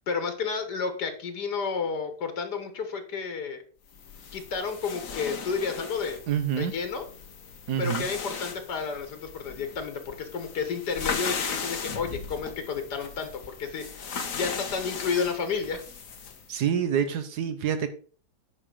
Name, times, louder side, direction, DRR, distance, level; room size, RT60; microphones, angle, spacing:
voice 1, 0.1-3.6 4.3-6.2 6.6-7.1 7.8-15.8, left 5 dB, 85° left, 8 dB, 2.0 m, -31 dB
sound 1, 3.9-16.5, left 5 dB, 55° left, 1.5 m, -37 dB
voice 2, 6.3-6.7 7.7-8.0 16.5-17.9, right 8 dB, 80° right, 10 dB, 1.4 m, -27 dB
9.7 x 5.5 x 5.0 m, 0.42 s
omnidirectional pair, 1.7 m